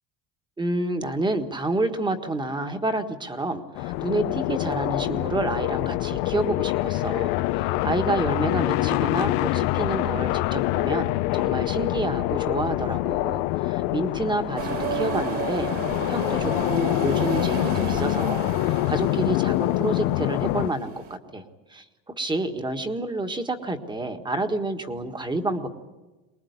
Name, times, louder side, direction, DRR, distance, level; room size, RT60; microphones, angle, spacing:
voice 1, 0.6-15.7 16.1-21.4 21.7-25.7, right 2 dB, 10° right, 7 dB, 1.6 m, -29 dB
sound 1, 3.8-20.7, left 18 dB, 85° left, 0.9 m, -25 dB
sound 2, 14.6-21.2, right 5 dB, 35° right, 2.3 m, -33 dB
24.0 x 21.0 x 9.6 m, 1.1 s
cardioid pair, 170°, 41 cm